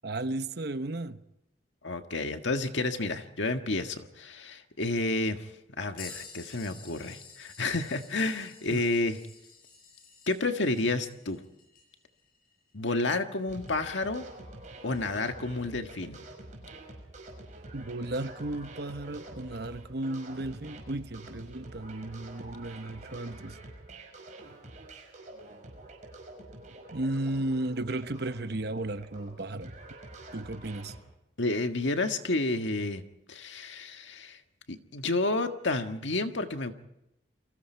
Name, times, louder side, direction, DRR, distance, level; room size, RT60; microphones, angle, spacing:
voice 1, 0.0-1.2 8.7-8.8 17.7-23.6 26.9-29.7 30.3-30.9, right 2 dB, 55° right, 1.0 m, -34 dB
voice 2, 1.8-5.5 5.8-9.2 10.3-11.4 12.7-14.2 14.8-16.2 31.4-33.0 33.3-34.4 34.7-36.7, left 2 dB, 75° left, 1.7 m, -30 dB
sound 1, 6.0-14.2 14.9-15.0 17.3-17.4 18.4-18.6 19.7-19.8, left 5 dB, 50° left, 6.5 m, -51 dB
sound 2, 13.5-31.0, right 2 dB, 40° right, 5.6 m, -47 dB
29.5 x 23.0 x 4.6 m
head